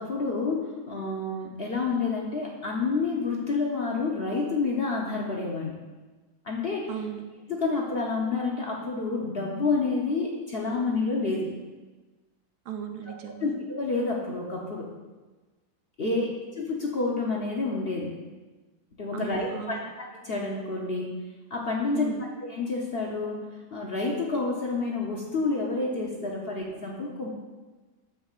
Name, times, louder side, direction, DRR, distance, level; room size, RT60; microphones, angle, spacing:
voice 1, 0.0-5.8 6.4-6.9 7.5-11.5 13.4-14.9 16.0-16.3 16.6-18.2 19.0-21.2 21.5-22.1 22.4-23.5 23.7-27.3, left 3 dB, 50° left, -1 dB, 0.8 m, -29 dB
voice 2, 6.9-7.3 12.6-13.5 16.0-16.4 19.1-19.8 21.9-22.2, right 9 dB, 75° right, 5 dB, 1.2 m, -36 dB
8.9 x 7.3 x 2.4 m, 1.3 s
omnidirectional pair, 1.7 m